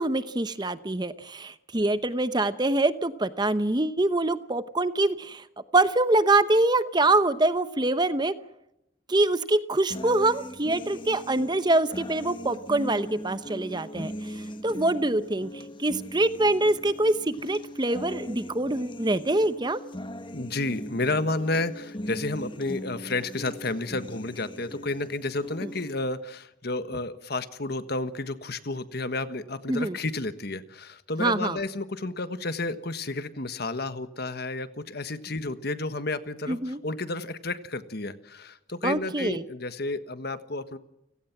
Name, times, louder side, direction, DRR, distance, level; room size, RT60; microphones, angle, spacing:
voice 1, 0.0-5.4 5.7-8.3 9.1-19.8 25.6-25.7 29.7-30.0 31.2-31.6 36.5-36.8 38.8-39.4, right 2 dB, 20° right, 13 dB, 0.8 m, -25 dB
sound 1, 9.9-25.9, equal, 25° left, 1.4 m, -40 dB
voice 2, 20.3-40.8, left 2 dB, 50° left, 12 dB, 1.5 m, -31 dB
30.0 x 17.5 x 6.1 m, 0.84 s
head